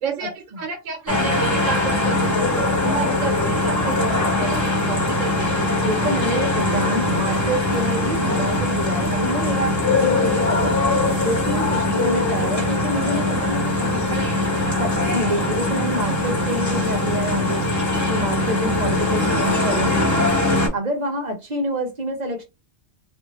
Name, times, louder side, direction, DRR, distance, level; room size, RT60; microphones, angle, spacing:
voice 1, 0.0-5.5 11.2-11.3, right 5 dB, 85° right, 1.0 m, -31 dB
sound 1, 1.1-20.7, left 2 dB, 15° left, 1.1 m, -21 dB
voice 2, 5.9-10.7 11.2-14.3 14.8-17.7 18.1-20.2 20.7-22.4, right 1 dB, 45° right, 0.7 m, -27 dB
2.6 x 2.5 x 2.8 m
omnidirectional pair, 1.3 m